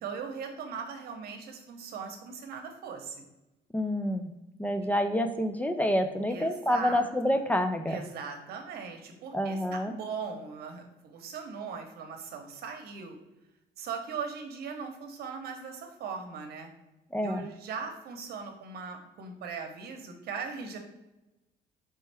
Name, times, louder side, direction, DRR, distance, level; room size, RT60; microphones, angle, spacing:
voice 1, 0.0-3.3 6.3-7.4 7.9-13.2 13.8-16.7 17.2-20.8, right 5 dB, 65° right, 4 dB, 0.9 m, -39 dB
voice 2, 3.7-4.3 4.6-8.0 9.3-9.9 17.1-17.5, equal, 10° left, 7 dB, 0.3 m, -28 dB
4.2 x 3.3 x 3.4 m, 0.98 s
cardioid pair, 110°, 17 cm